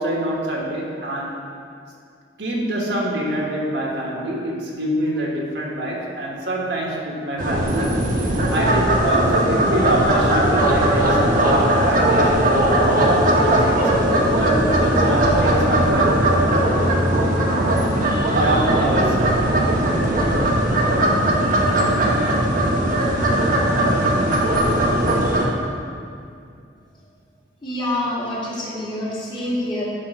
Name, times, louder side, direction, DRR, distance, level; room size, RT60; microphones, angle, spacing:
voice 1, 0.0-1.4 2.4-7.9 8.5-13.0 13.4-16.7 18.3-19.8, right 1 dB, 70° right, -2 dB, 1.4 m, -25 dB
sound 1, 7.4-25.5, right 1 dB, 50° right, 1.1 m, -18 dB
voice 2, 27.6-29.9, left 1 dB, 25° left, -7 dB, 1.9 m, -26 dB
10.0 x 3.6 x 5.7 m, 2.3 s
head